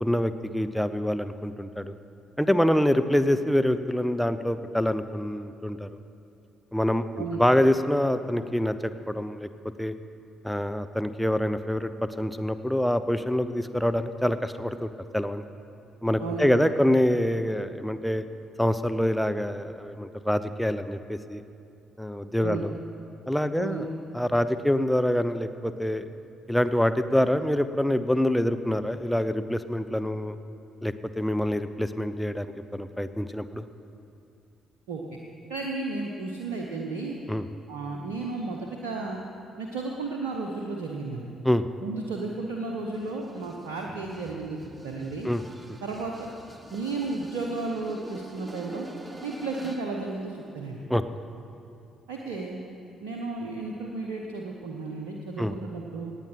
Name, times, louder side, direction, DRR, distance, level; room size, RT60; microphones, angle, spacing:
voice 1, 0.0-1.9 2.4-5.9 6.7-8.7 9.1-9.5 9.8-9.9 10.4-15.4 16.0-18.2 18.6-21.4 22.0-22.7 23.3-23.9 24.1-26.0 26.5-30.3 30.8-32.5 32.7-33.6 37.3-37.5 41.4-41.7 45.2-45.4 50.9-51.0 55.4-55.5, left 1 dB, 5° left, 10 dB, 0.8 m, -25 dB
voice 2, 16.2-16.7 22.4-22.7 23.6-23.9 34.9-35.0 35.5-37.2 37.7-39.2 39.6-41.3 41.8-44.6 44.8-45.3 45.8-46.3 46.7-48.9 49.2-50.8 52.1-52.6 53.0-56.1, right 3 dB, 75° right, 0 dB, 1.0 m, -33 dB
sound 1, 42.9-50.0, right 1 dB, 15° right, 1.3 m, -46 dB
18.0 x 9.0 x 5.9 m, 2.6 s
figure-of-eight pair, 45°, 0 cm